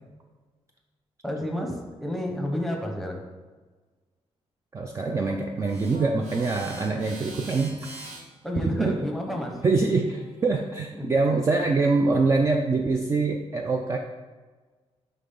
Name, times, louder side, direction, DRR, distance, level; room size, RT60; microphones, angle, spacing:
voice 1, 1.2-3.2 8.4-9.6 10.9-11.1 11.6-11.7, left 1 dB, ahead, 1 dB, 0.9 m, -30 dB
voice 2, 4.7-7.8 8.8-8.9 9.6-14.0, right 3 dB, 25° right, 3 dB, 0.4 m, -24 dB
sound 1, 5.6-10.7, right 2 dB, 70° right, 1.5 m, -45 dB
11.0 x 3.7 x 3.8 m, 1.3 s
wide cardioid pair, 180°, 11 cm